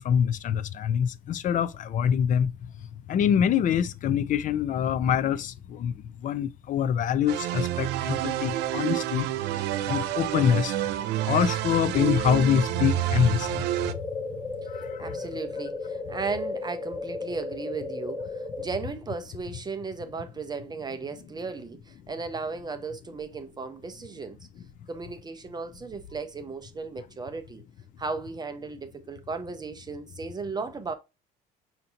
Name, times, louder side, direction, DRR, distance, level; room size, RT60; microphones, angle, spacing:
voice 1, 0.0-2.5 3.1-5.9 6.2-9.3 9.9-10.8 11.3-13.6 14.7-15.2, left 8 dB, 50° left, 0.5 m, -25 dB
sound 1, 7.3-13.9, right 14 dB, 85° right, 0.4 m, -28 dB
sound 2, 13.6-18.6, left 3 dB, 5° left, 0.9 m, -35 dB
voice 2, 15.0-24.4 24.9-27.6 28.0-30.9, right 4 dB, 25° right, 0.5 m, -35 dB
5.7 x 2.7 x 2.6 m
cardioid pair, 110°, 17 cm